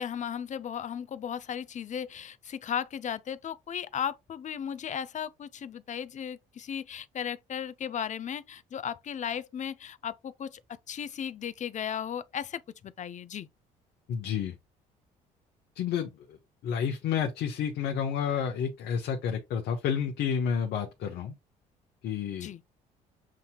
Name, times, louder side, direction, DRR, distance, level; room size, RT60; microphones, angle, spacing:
voice 1, 0.0-13.5 22.4-22.6, left 8 dB, 45° left, 0.6 m, -36 dB
voice 2, 14.1-14.5 15.7-16.4 16.6-21.3 22.0-22.7, left 7 dB, 70° left, 1.0 m, -30 dB
7.4 x 2.8 x 2.2 m
supercardioid pair, 65°, 17 cm